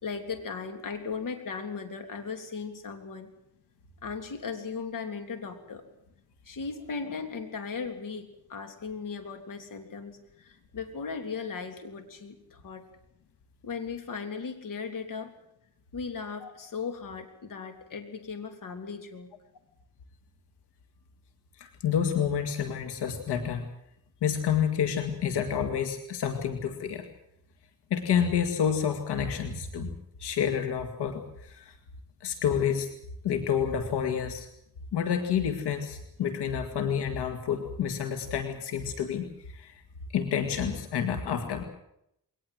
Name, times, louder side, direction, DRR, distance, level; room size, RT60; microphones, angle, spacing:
voice 1, 0.0-3.3 4.0-5.8 6.5-12.9 13.6-15.3 15.9-19.3, left 5 dB, 55° left, 6 dB, 3.4 m, -37 dB
voice 2, 21.6-23.7 24.2-27.1 27.9-29.9 30.2-31.8 32.2-32.9 33.2-34.5 34.9-39.8 40.1-41.6, left 8 dB, 85° left, 6 dB, 2.2 m, -29 dB
21.5 x 19.0 x 7.8 m, 0.77 s
cardioid pair, 130°, 39 cm